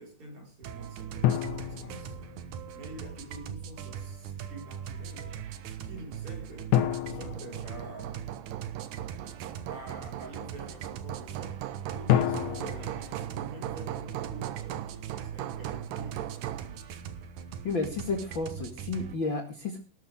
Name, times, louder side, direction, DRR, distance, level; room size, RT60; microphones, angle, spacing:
voice 1, 0.0-2.2 2.7-5.4 5.8-6.8 7.1-8.3 9.6-13.0 13.3-16.9, right 1 dB, 40° right, 5.7 m, -47 dB
sound 1, 0.6-19.2, right 9 dB, 70° right, 2.6 m, -40 dB
sound 2, 1.2-2.9 6.7-8.6 12.1-14.4, left 11 dB, 70° left, 2.5 m, -30 dB
Hammer, 7.1-16.8, right 13 dB, 85° right, 2.6 m, -40 dB
voice 2, 17.6-19.8, left 3 dB, 40° left, 2.1 m, -32 dB
18.0 x 13.0 x 3.6 m
omnidirectional pair, 3.8 m